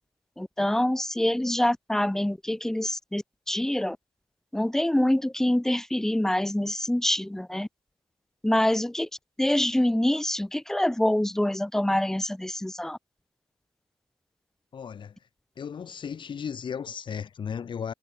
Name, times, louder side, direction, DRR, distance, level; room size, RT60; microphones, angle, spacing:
voice 1, 0.4-4.0 4.5-7.7 8.4-9.1 9.4-13.0, left 1 dB, 5° left, 0.3 m, -25 dB
voice 2, 14.7-15.2 15.6-17.9, left 7 dB, 45° left, 1.4 m, -35 dB
wide cardioid pair, 150°, 11 cm